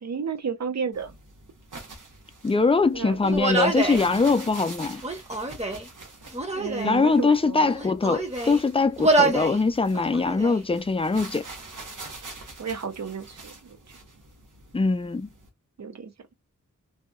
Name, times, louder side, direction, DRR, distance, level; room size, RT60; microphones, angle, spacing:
voice 1, 0.0-1.2 2.9-3.2 6.5-7.8 12.6-13.8 15.8-16.1, right 6 dB, 60° right, 0.5 m, -32 dB
sound 1, 0.9-15.5, right 3 dB, 80° right, 0.9 m, -45 dB
voice 2, 2.4-5.0 6.8-11.4 14.7-15.3, left 4 dB, 20° left, 0.4 m, -22 dB
Human voice, 3.2-4.0 5.0-5.9 6.3-7.0 7.6-8.6 9.0-9.6 9.9-10.6, right 2 dB, 20° right, 0.7 m, -26 dB
2.7 x 2.2 x 2.4 m
wide cardioid pair, 65°, 31 cm